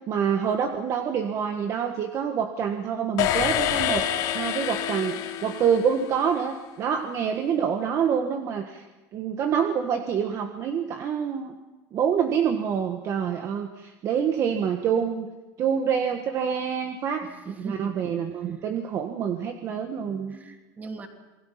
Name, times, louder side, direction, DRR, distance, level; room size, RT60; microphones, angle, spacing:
voice 1, 0.1-8.8 9.1-11.6 11.9-15.3 15.6-20.4, right 7 dB, 40° right, 5 dB, 1.6 m, -26 dB
sound 1, 3.2-6.3, left 11 dB, 60° left, 2.9 m, -27 dB
voice 2, 17.2-18.1 20.3-21.1, right 4 dB, 20° right, 3 dB, 3.1 m, -39 dB
28.5 x 20.5 x 5.8 m, 1.1 s
cardioid pair, 155°, 8 cm